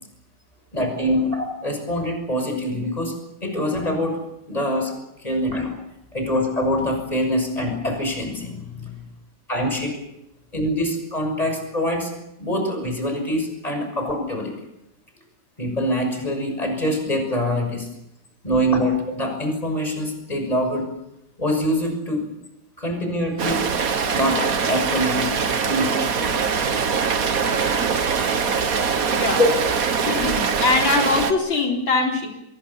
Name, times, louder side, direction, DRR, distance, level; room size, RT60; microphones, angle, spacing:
voice 1, 0.7-3.1 3.4-4.2 4.5-4.9 5.2-5.8 6.1-8.9 9.5-10.0 10.5-12.1 12.4-14.5 15.6-17.9 18.4-20.9 21.4-22.3 22.8-23.6 24.1-26.4 29.4-29.5, equal, 20° left, 4 dB, 6.4 m, -24 dB
Rain, 23.4-31.3, right 6 dB, 50° right, 1.7 m, -22 dB
voice 2, 30.1-32.3, left 3 dB, 85° left, 1 dB, 4.8 m, -22 dB
25.5 x 22.0 x 7.2 m, 0.86 s
omnidirectional pair, 2.1 m